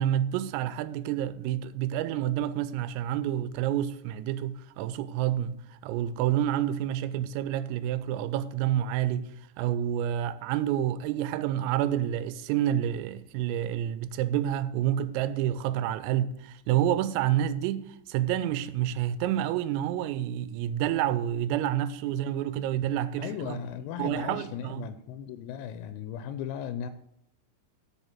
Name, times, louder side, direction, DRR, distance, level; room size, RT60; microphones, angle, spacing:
voice 1, 0.0-9.3 9.6-23.6 24.0-24.9, right 11 dB, 85° right, 3.2 m, -28 dB
voice 2, 23.2-26.9, left 8 dB, 90° left, 3.3 m, -37 dB
8.1 x 6.8 x 7.3 m
omnidirectional pair, 5.9 m